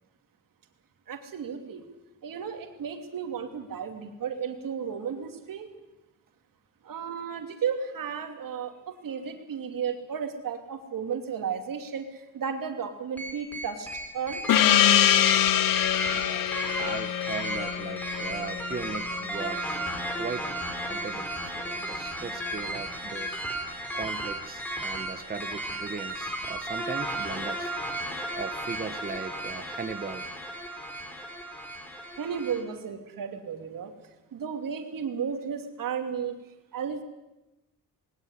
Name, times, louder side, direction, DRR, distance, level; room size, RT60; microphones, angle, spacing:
voice 1, 1.1-1.9 2.2-5.7 6.8-13.9 14.1-14.4 32.2-33.9 34.3-36.3 36.7-37.0, right 7 dB, 75° right, 6 dB, 2.8 m, -33 dB
sound 1, 13.2-32.6, right 1 dB, 5° left, 3.7 m, -34 dB
Gong, 14.5-19.5, left 11 dB, 75° left, 0.9 m, -24 dB
voice 2, 16.1-19.8 20.2-20.5 20.8-23.4 23.9-27.7 28.4-30.3, right 5 dB, 25° right, 8 dB, 1.0 m, -38 dB
20.0 x 18.0 x 9.7 m, 0.98 s
wide cardioid pair, 170°, 34 cm